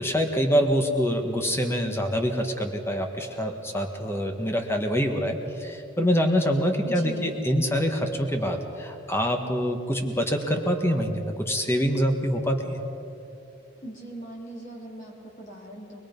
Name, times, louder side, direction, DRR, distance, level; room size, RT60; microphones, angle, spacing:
voice 1, 0.0-12.8, equal, 15° left, 4 dB, 1.5 m, -25 dB
voice 2, 6.8-7.4 13.8-16.0, right 1 dB, 40° left, -2 dB, 3.8 m, -40 dB
25.0 x 20.0 x 5.4 m, 2.7 s
head